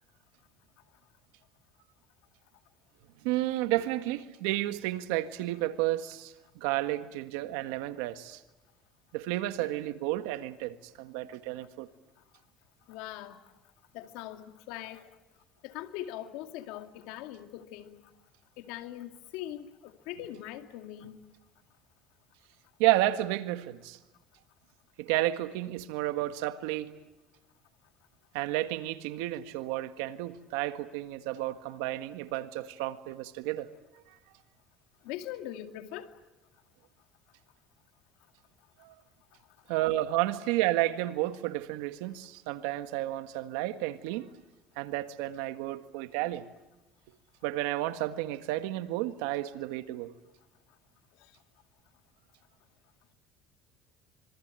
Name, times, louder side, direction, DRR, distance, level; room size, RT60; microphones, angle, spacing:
voice 1, 3.2-8.4 9.1-11.9 22.8-24.0 25.0-26.9 28.3-33.7 38.8-38.9 39.7-44.3 44.8-46.4 47.4-50.1, right 15 dB, 90° right, 1.6 m, -31 dB
voice 2, 12.9-13.4 13.9-15.1 15.6-18.0 18.6-21.2 35.0-36.1 46.2-46.3, left 13 dB, 80° left, 2.2 m, -41 dB
26.0 x 24.0 x 9.0 m
cardioid pair, 115°, 0 cm